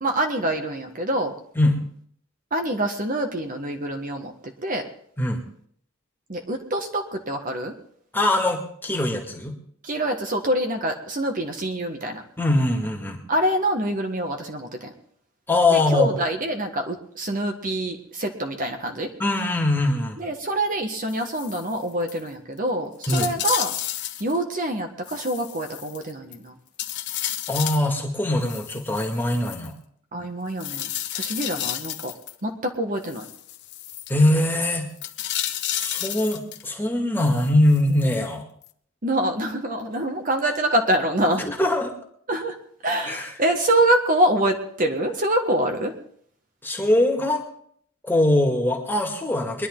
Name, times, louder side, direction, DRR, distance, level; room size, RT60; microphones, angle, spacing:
voice 1, 0.0-1.3 2.5-4.3 4.6-4.8 6.3-7.7 9.8-12.2 13.3-14.9 15.7-19.1 20.2-23.7 24.2-26.5 30.1-32.1 32.4-33.2 39.0-41.5 42.3-42.6 42.8-45.9, right 1 dB, 40° right, 4 dB, 1.4 m, -25 dB
voice 2, 8.1-9.5 12.4-13.2 15.5-16.1 19.2-20.2 23.1-23.3 27.5-29.7 34.1-34.9 35.7-38.4 41.4-41.9 43.1-43.3 46.6-47.4 48.0-49.7, left 1 dB, 10° left, 0 dB, 2.1 m, -22 dB
sound 1, 21.1-21.8 22.1-22.2 22.6-22.7 23.0-24.4 25.1-26.4 26.8-27.9 28.4-29.7 30.6-32.3 33.0-34.1 35.0-36.7 37.2-38.2 38.6-38.7, left 12 dB, 55° left, 0.9 m, -32 dB
22.0 x 11.0 x 3.8 m, 0.62 s
head